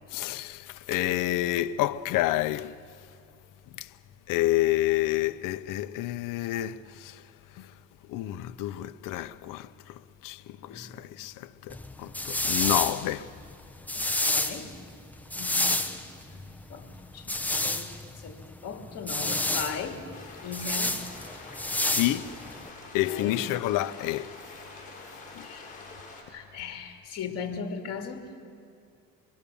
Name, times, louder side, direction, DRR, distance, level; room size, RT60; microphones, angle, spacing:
voice 1, 0.1-2.7 3.7-3.9 4.3-7.2 7.6-7.7 8.1-9.7 10.2-13.3 21.9-22.3 22.9-24.3 25.3-25.5, left 15 dB, 70° left, 0.7 m, -29 dB
sound 1, 11.7-22.7, left 2 dB, 5° left, 0.9 m, -30 dB
voice 2, 13.9-14.7 15.4-16.0 16.3-16.4 16.7-16.9 17.1-20.0 20.4-21.1 23.0-23.4 25.4-25.8 26.3-28.3, left 5 dB, 45° left, 2.5 m, -38 dB
sound 2, 20.1-26.2, left 3 dB, 25° left, 6.8 m, -46 dB
24.0 x 23.0 x 7.0 m
cardioid pair, 135°, 33 cm